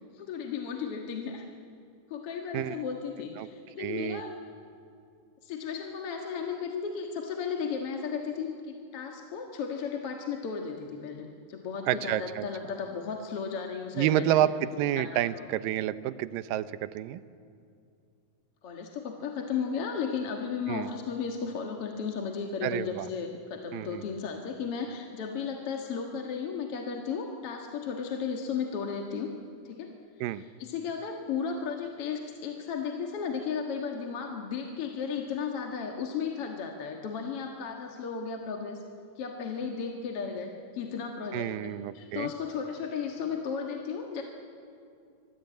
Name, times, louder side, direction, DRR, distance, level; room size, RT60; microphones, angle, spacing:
voice 1, 0.1-1.5 2.1-4.3 5.4-14.5 15.0-15.2 18.6-29.3 29.6-29.9 30.3-38.8 39.2-44.2, left 6 dB, 50° left, 2 dB, 2.2 m, -35 dB
voice 2, 3.8-4.2 11.9-12.5 14.0-17.2 20.7-20.9 22.6-23.1 23.7-24.0 30.2-30.4 41.3-42.3, right 12 dB, 90° right, 14 dB, 2.5 m, -29 dB
26.5 x 23.5 x 9.2 m, 2.4 s
omnidirectional pair, 3.9 m